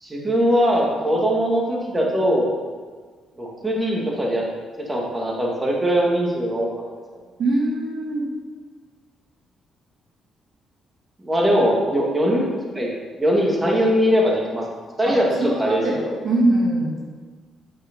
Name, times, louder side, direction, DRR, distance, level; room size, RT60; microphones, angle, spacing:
voice 1, 0.0-2.5 3.4-4.4 4.9-6.7 11.2-12.5 12.7-12.9 13.2-14.6 15.0-16.1, equal, 15° right, -2 dB, 1.9 m, -21 dB
voice 2, 7.4-8.3 15.0-17.1, right 2 dB, 65° right, -2 dB, 1.6 m, -22 dB
8.5 x 4.8 x 5.2 m, 1.5 s
cardioid pair, 90°, 0 cm